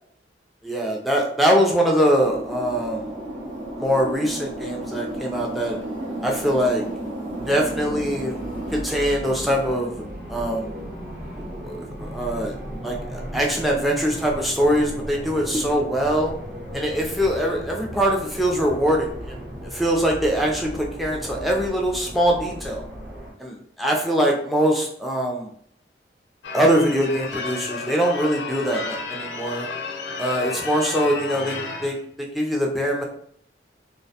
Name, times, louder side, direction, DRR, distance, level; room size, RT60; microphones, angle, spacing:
voice 1, 0.6-3.1 3.8-5.8 6.2-6.8 7.5-8.4 8.7-10.0 10.3-10.7 11.6-12.6 12.8-16.3 16.7-19.4 19.7-22.9 23.4-25.5 26.5-29.7 30.2-31.6 31.8-33.0, equal, ahead, -1 dB, 0.3 m, -23 dB
sound 1, 2.2-8.8, right 1 dB, 90° right, 0.7 m, -33 dB
sound 2, 7.3-23.3, equal, 45° right, 0.8 m, -36 dB
Church bell / Car / Alarm, 26.4-32.0, left 4 dB, 70° left, 0.4 m, -32 dB
2.4 x 2.1 x 2.7 m, 0.64 s
head